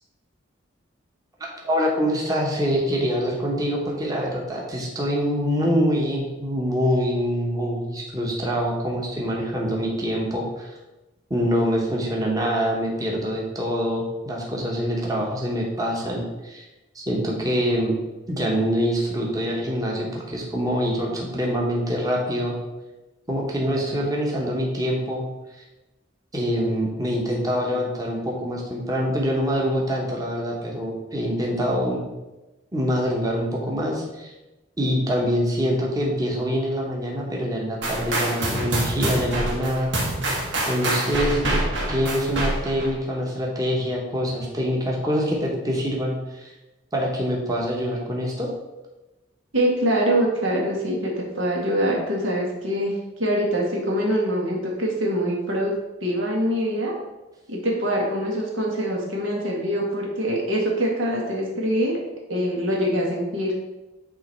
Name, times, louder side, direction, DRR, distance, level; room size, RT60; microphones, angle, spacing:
voice 1, 1.6-10.7 11.3-16.7 16.9-17.9 18.3-22.6 23.3-25.2 25.5-25.6 26.3-32.0 32.7-34.3 34.8-39.9 40.6-41.6 41.9-46.5 46.9-48.5, equal, 20° right, -2 dB, 1.0 m, -25 dB
sound 1, 37.8-42.9, right 1 dB, 65° right, 1.5 m, -26 dB
voice 2, 49.5-55.7 56.0-56.9 57.5-62.0 62.3-63.5, equal, 85° right, -2 dB, 1.8 m, -24 dB
8.7 x 3.1 x 4.4 m, 1.1 s
head